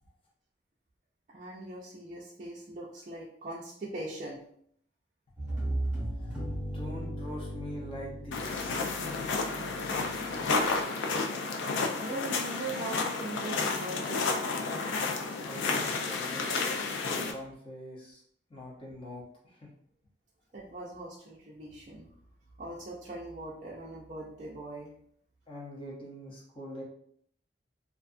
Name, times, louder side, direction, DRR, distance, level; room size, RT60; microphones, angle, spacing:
voice 1, 1.3-4.4 9.6-10.2 10.6-10.7 12.0-14.4 18.6-18.7 20.5-22.1 22.6-24.9, right 2 dB, 40° right, -6 dB, 0.4 m, -41 dB
sound 1, 5.4-10.2, right 1 dB, 5° right, 0.8 m, -36 dB
voice 2, 5.6-9.4 15.3-16.5 17.0-18.2 18.5-19.7 25.5-26.8, left 1 dB, 30° left, -4 dB, 0.7 m, -44 dB
sound 2, 8.3-17.3, left 4 dB, 80° left, 0.4 m, -31 dB
2.4 x 2.3 x 2.5 m, 0.64 s
head